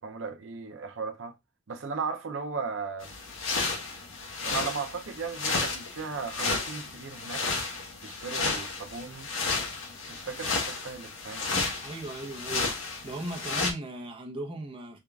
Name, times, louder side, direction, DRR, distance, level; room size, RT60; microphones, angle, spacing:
voice 1, 0.0-1.3 1.7-3.2 4.4-7.5 8.0-9.3 10.1-11.7, right 5 dB, 75° right, 0.6 m, -36 dB
sound 1, 3.0-13.7, left 3 dB, 90° left, 1.0 m, -32 dB
voice 2, 11.8-12.7 13.0-15.0, right 1 dB, 25° right, 0.9 m, -37 dB
3.6 x 2.4 x 3.3 m
head